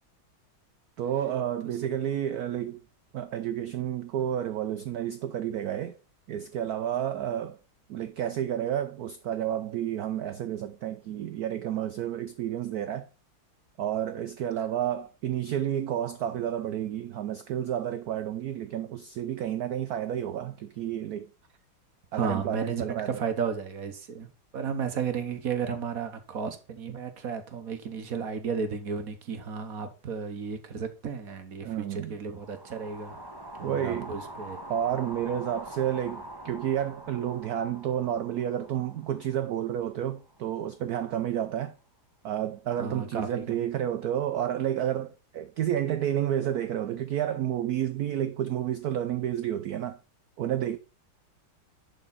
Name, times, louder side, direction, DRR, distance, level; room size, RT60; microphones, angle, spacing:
voice 1, 1.0-2.8 3.1-6.0 6.3-7.6 7.9-13.1 13.8-21.3 22.1-23.2 31.6-32.2 33.6-34.1 34.7-41.7 42.2-50.0 50.4-50.8, right 10 dB, 80° right, 0.8 m, -30 dB
voice 2, 22.1-33.2 33.6-34.6 42.7-43.6, right 6 dB, 50° right, 1.3 m, -33 dB
sound 1, 32.3-40.5, right 1 dB, 15° right, 0.8 m, -44 dB
11.0 x 4.9 x 4.0 m
omnidirectional pair, 2.3 m